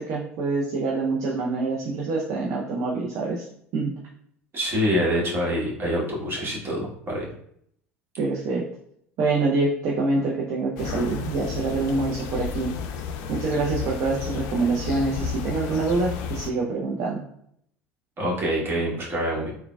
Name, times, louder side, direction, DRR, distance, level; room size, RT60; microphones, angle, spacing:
voice 1, 0.0-3.5 3.7-3.9 8.2-8.7 9.2-12.7 13.3-17.3, right 3 dB, 45° right, -3 dB, 0.5 m, -25 dB
voice 2, 4.5-7.3 18.2-19.5, equal, 30° right, -4 dB, 1.2 m, -26 dB
sound 1, 10.8-16.5, left 7 dB, 50° left, 0.4 m, -32 dB
3.8 x 2.1 x 2.2 m, 0.69 s
figure-of-eight pair, 70°, 8 cm